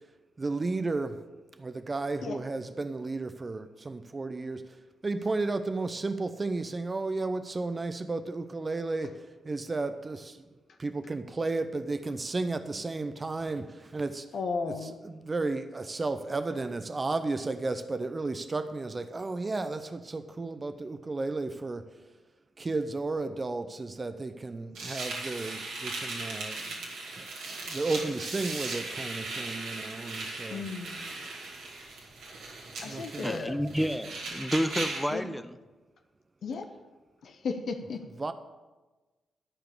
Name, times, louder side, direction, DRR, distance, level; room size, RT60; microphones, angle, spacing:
voice 1, 0.4-1.2 1.6-4.8 5.0-10.4 10.8-14.3 14.7-21.9 22.6-26.7 27.2-27.3 27.6-30.6 32.8-33.6 38.2-38.3, right 3 dB, 35° right, 0.7 m, -33 dB
voice 2, 14.3-15.0 30.5-31.1 32.8-33.6 35.1-35.2 36.4-36.7 37.2-38.0, left 4 dB, 65° left, 0.8 m, -35 dB
sound 1, 24.7-35.1, right 3 dB, 75° right, 2.3 m, -38 dB
voice 3, 33.2-35.6, equal, ahead, 0.8 m, -30 dB
12.0 x 4.9 x 8.2 m
hypercardioid pair, 40°, 0 cm